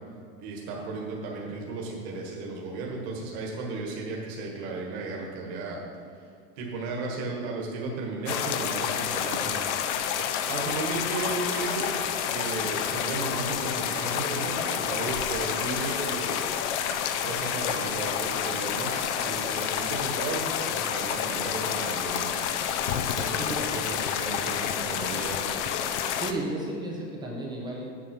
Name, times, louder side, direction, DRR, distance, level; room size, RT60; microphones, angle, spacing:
voice 1, 0.4-5.8 6.6-9.7 10.5-12.0 12.3-16.4 17.2-22.5 23.1-25.5, right 3 dB, 40° right, -2 dB, 1.6 m, -34 dB
sound 1, 8.3-26.3, left 9 dB, 45° left, 0.6 m, -29 dB
voice 2, 26.2-27.9, right 1 dB, 10° right, -2 dB, 0.7 m, -33 dB
8.0 x 7.7 x 6.0 m, 2.3 s
supercardioid pair, 165°, 48 cm